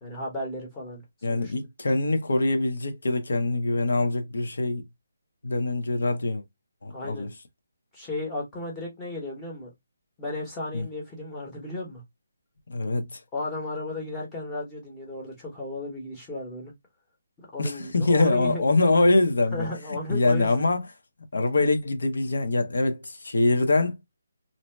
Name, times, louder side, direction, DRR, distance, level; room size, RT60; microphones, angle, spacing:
voice 1, 0.0-1.0 1.3-1.5 6.9-7.3 7.9-9.7 10.2-12.0 13.3-16.7 17.5-18.6 19.5-20.6, left 2 dB, 10° left, 0.8 m, -34 dB
voice 2, 1.2-4.8 5.4-6.4 6.8-7.3 10.7-10.9 12.7-13.2 17.6-19.7 20.1-20.9 21.3-24.0, left 2 dB, 70° left, 0.8 m, -24 dB
2.7 x 2.1 x 3.1 m
hypercardioid pair, 175°, 0 cm